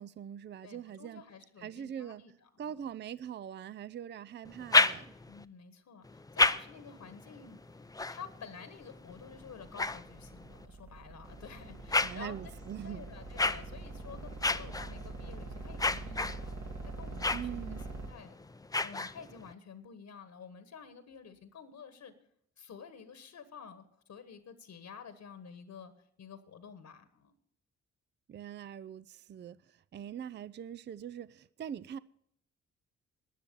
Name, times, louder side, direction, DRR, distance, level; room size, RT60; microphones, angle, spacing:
voice 1, 0.0-1.2 1.6-2.2 2.6-5.1 12.0-13.1 17.3-17.8 28.3-32.0, right 9 dB, 30° right, 0.5 m, -42 dB
voice 2, 0.6-2.8 5.2-7.8 8.1-12.5 12.8-18.4 18.8-22.1 22.6-25.9 26.2-27.3, left 6 dB, 55° left, 1.4 m, -50 dB
sound 1, 4.4-5.4 6.0-10.7 11.2-19.5, left 3 dB, 10° left, 0.6 m, -34 dB
sound 2, 9.1-18.1, right 3 dB, 50° right, 2.0 m, -44 dB
11.5 x 10.0 x 6.9 m
hypercardioid pair, 45°, 34 cm